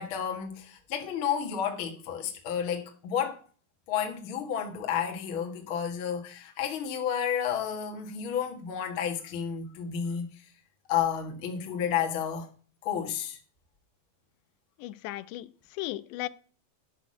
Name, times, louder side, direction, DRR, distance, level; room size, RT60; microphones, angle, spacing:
voice 1, 0.0-3.4 3.9-10.3 10.9-12.5 12.8-13.4, left 8 dB, 60° left, 1.3 m, -31 dB
voice 2, 14.8-16.3, left 17 dB, 85° left, 2.8 m, -36 dB
10.0 x 6.0 x 6.3 m
omnidirectional pair, 5.1 m